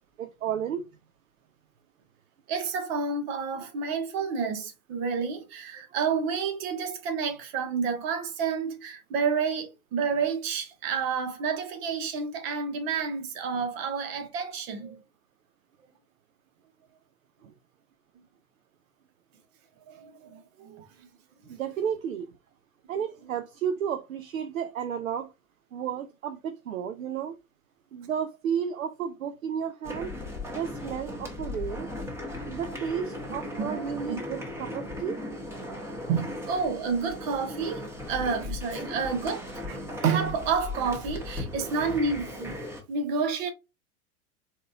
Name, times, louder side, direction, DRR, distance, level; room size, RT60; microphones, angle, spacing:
voice 1, 0.2-0.9 17.4-17.5 21.5-22.3 22.9-25.3 25.7-27.4 27.9-30.1 30.5-31.9 32.5-35.2, right 8 dB, 65° right, 0.7 m, -32 dB
voice 2, 2.5-15.0 19.9-21.1 21.4-21.5 23.2-23.3 33.6-33.8 34.1-34.2 36.1-42.5 42.9-43.5, right 5 dB, 45° right, 1.4 m, -30 dB
sound 1, 29.8-42.8, left 2 dB, 5° right, 1.3 m, -37 dB
4.2 x 3.9 x 2.5 m
figure-of-eight pair, 90°, 44 cm